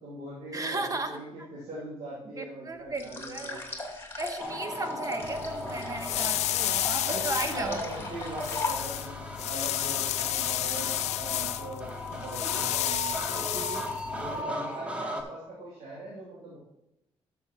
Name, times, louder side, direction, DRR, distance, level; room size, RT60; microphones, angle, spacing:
voice 1, 0.0-3.6 6.1-6.5 7.0-13.9 14.2-16.6, right 1 dB, 90° right, -7 dB, 2.9 m, -41 dB
voice 2, 0.5-1.2 2.3-3.6 4.2-7.8 10.8-10.9 12.4-12.6, right 2 dB, 30° right, 6 dB, 1.3 m, -35 dB
sound 1, 2.9-9.2, left 3 dB, 25° left, 2.4 m, -38 dB
sound 2, 4.4-15.2, left 1 dB, 10° right, 1.5 m, -37 dB
sound 3, 5.2-14.4, left 13 dB, 85° left, 0.4 m, -32 dB
12.0 x 7.3 x 3.0 m, 0.89 s
cardioid pair, 75°, 11 cm